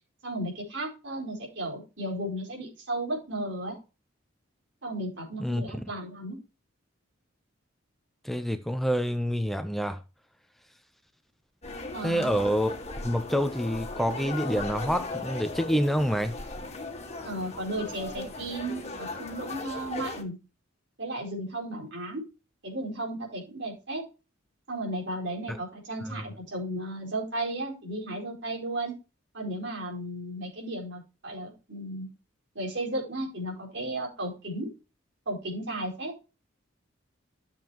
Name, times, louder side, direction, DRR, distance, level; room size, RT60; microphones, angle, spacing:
voice 1, 0.2-3.8 4.8-6.4 11.9-12.3 17.2-20.4 21.0-22.2 22.6-24.0 24.7-29.0 29.3-32.1 32.5-34.7 35.3-36.1, right 1 dB, 65° right, 4.6 m, -34 dB
voice 2, 8.2-10.0 12.0-16.4 25.5-25.6 26.1-26.2, equal, ahead, 0.6 m, -27 dB
sound 1, 11.6-20.2, left 2 dB, 35° left, 1.9 m, -38 dB
13.0 x 7.2 x 3.0 m
head